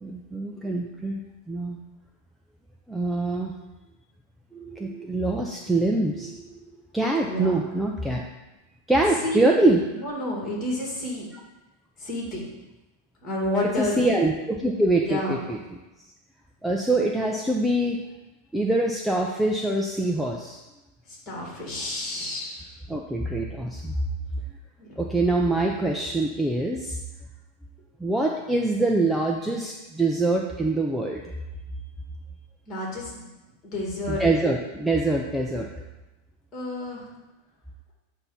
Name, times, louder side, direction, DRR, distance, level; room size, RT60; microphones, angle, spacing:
voice 1, 0.0-1.2 1.5-1.8 2.9-3.5 4.5-6.4 6.9-8.2 8.9-9.8 13.8-15.6 16.6-18.0 18.5-20.6 22.9-23.9 25.0-27.0 28.0-31.2 34.1-35.7, right 2 dB, 5° right, 0 dB, 0.4 m, -24 dB
voice 2, 7.2-7.6 9.2-9.6 10.0-11.3 12.0-12.5 13.2-14.0 15.0-15.4 21.1-22.7 24.8-24.9 32.7-33.3 33.7-34.2 36.5-37.1, left 1 dB, 30° left, -3 dB, 2.0 m, -30 dB
8.0 x 2.7 x 5.6 m, 1.1 s
supercardioid pair, 155°, 0 cm